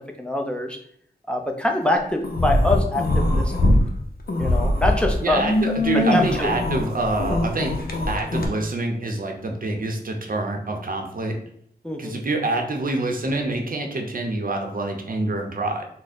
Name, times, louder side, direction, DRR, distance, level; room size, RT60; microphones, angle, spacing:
voice 1, 0.2-0.8 1.3-3.5 4.4-5.7 6.1-6.6 11.8-12.2, left 1 dB, 5° left, 2 dB, 0.6 m, -24 dB
sound 1, 2.2-3.8 4.2-8.5, left 1 dB, 60° left, 0.7 m, -22 dB
voice 2, 5.2-7.8 8.1-11.4 12.0-15.9, right 2 dB, 55° right, 3 dB, 0.7 m, -26 dB
3.6 x 2.1 x 4.1 m, 0.67 s
wide cardioid pair, 85°, 17 cm